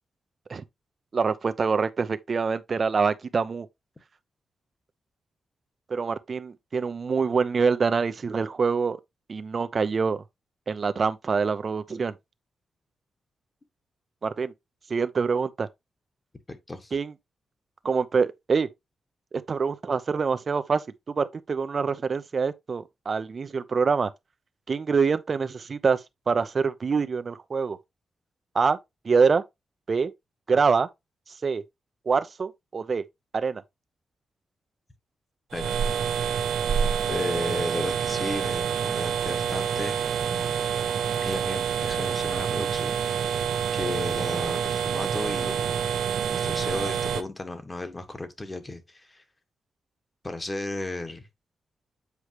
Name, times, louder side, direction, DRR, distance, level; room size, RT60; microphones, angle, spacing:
voice 1, 1.1-3.7 5.9-9.0 9.3-10.2 10.7-12.1 14.2-14.5 14.9-15.7 16.9-17.1 17.8-18.7 19.3-20.8 21.2-24.1 24.7-27.8 28.5-28.8 29.0-29.4 29.9-30.1 30.5-30.9 31.4-31.6 32.1-33.0 33.3-33.6, right 5 dB, 45° right, 0.7 m, -25 dB
voice 2, 16.5-16.9 35.5-35.8 36.1-36.3 37.1-40.6 41.2-45.9 46.3-49.2 50.2-51.3, left 2 dB, 25° left, 1.6 m, -35 dB
sound 1, 35.5-47.2, right 7 dB, 85° right, 0.9 m, -27 dB
8.2 x 4.7 x 3.0 m
cardioid pair, 85°, 0 cm